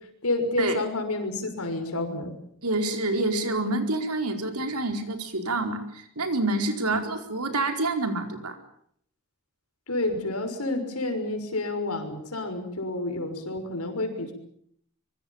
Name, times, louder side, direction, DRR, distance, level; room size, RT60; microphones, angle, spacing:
voice 1, 0.2-2.4 6.8-7.0 9.9-14.3, left 2 dB, 75° left, 6 dB, 6.1 m, -29 dB
voice 2, 2.6-8.6, right 2 dB, 85° right, 5 dB, 4.6 m, -27 dB
25.0 x 24.0 x 7.4 m, 0.68 s
head